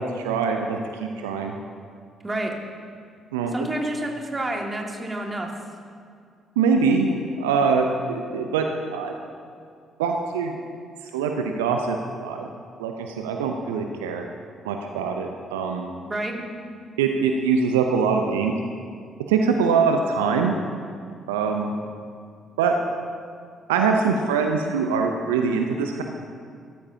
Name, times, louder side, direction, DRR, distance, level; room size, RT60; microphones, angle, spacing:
voice 1, 0.0-1.6 3.3-3.5 6.6-8.7 8.9-9.1 10.0-10.6 11.1-12.5 12.8-14.3 14.6-15.9 17.0-18.5 19.3-20.6 21.3-21.7 22.6-22.8 23.7-26.0, right 5 dB, 75° right, 4 dB, 0.6 m, -23 dB
voice 2, 2.2-2.6 3.5-5.5 16.1-16.6, right 1 dB, 20° right, 1 dB, 2.0 m, -29 dB
16.5 x 13.5 x 2.8 m, 2.2 s
figure-of-eight pair, 45°, 0 cm